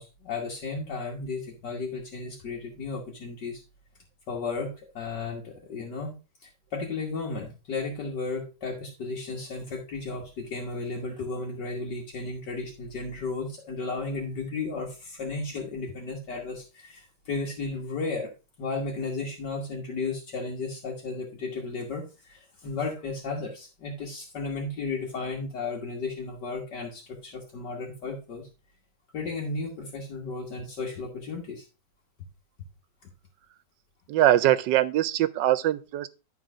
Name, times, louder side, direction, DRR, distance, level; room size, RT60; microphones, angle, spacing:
voice 1, 0.0-3.6 4.3-6.1 6.4-18.3 18.6-28.5 29.1-31.6 33.0-33.1, left 3 dB, 70° left, 2.1 m, -34 dB
voice 2, 34.1-36.1, right 13 dB, 90° right, 1.3 m, -22 dB
11.5 x 4.0 x 4.9 m
omnidirectional pair, 1.9 m